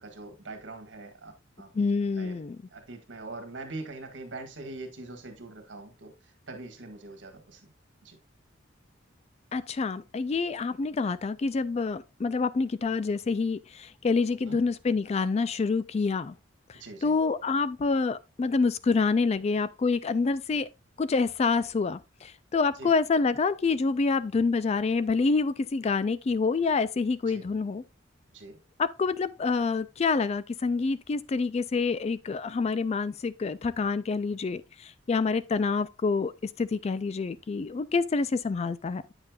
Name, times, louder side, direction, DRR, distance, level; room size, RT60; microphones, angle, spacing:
voice 1, 0.0-1.7 2.2-2.4 2.7-6.1 6.5-7.7 8.0-8.2 14.4-14.6 16.7-17.1 22.8-22.9 27.2-27.4 28.3-28.6, right 2 dB, 65° right, 1.7 m, -42 dB
voice 2, 1.7-2.6 9.5-16.3 16.7-20.7 21.0-27.8 28.8-39.0, left 4 dB, 35° left, 0.3 m, -27 dB
8.7 x 6.7 x 2.4 m
head